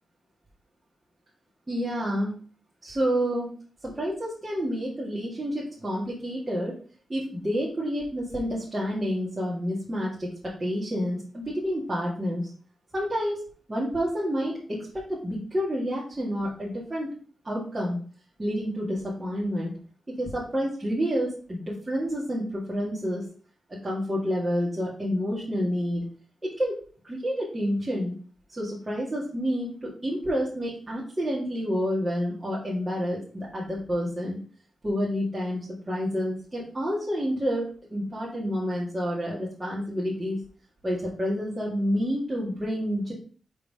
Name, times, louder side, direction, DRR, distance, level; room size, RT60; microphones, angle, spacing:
voice 1, 1.7-2.3 2.8-3.5 3.8-6.8 7.1-12.5 12.9-13.4 13.7-17.1 17.4-18.0 18.4-19.7 20.2-23.2 23.7-26.0 26.4-28.1 28.5-34.4 34.8-40.4 40.8-43.1, equal, 25° right, -7 dB, 2.0 m, -29 dB
5.4 x 3.8 x 4.9 m, 0.42 s
cardioid pair, 75°, 0 cm